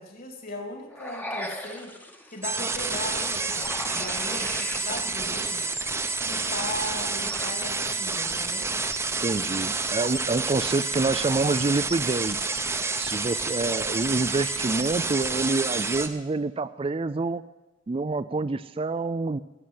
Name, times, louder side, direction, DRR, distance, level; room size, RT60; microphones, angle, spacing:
voice 1, 0.0-1.9 2.3-5.7 6.2-8.7, left 1 dB, 50° left, 4 dB, 2.7 m, -37 dB
sound 1, 0.9-7.5, left 1 dB, 10° left, 1.1 m, -40 dB
sound 2, 2.4-16.1, right 3 dB, 15° right, 0.8 m, -29 dB
voice 2, 9.2-12.5 13.0-17.4 17.9-19.4, right 3 dB, 30° right, 13 dB, 0.4 m, -27 dB
15.0 x 8.1 x 9.5 m, 1.1 s
head